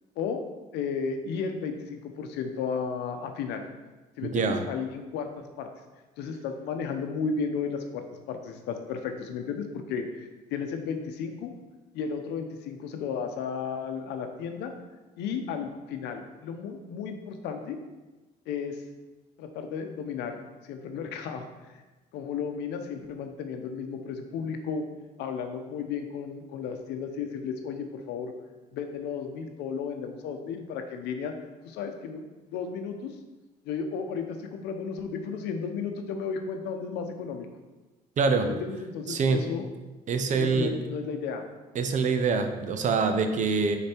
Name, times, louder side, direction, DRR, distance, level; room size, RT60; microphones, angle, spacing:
voice 1, 0.7-3.6 4.2-5.7 6.2-11.5 11.9-14.7 15.2-17.8 18.5-18.8 19.4-21.8 22.1-24.8 25.2-28.3 28.7-31.3 31.6-32.2 32.5-33.2 33.7-37.5 38.4-39.7 40.4-41.4, left 6 dB, 85° left, 6 dB, 0.7 m, -34 dB
voice 2, 38.2-38.5 39.1-39.4 40.1-40.7 41.7-43.8, right 4 dB, 45° right, 7 dB, 0.6 m, -25 dB
5.3 x 4.1 x 4.4 m, 1.2 s
cardioid pair, 110°, 17 cm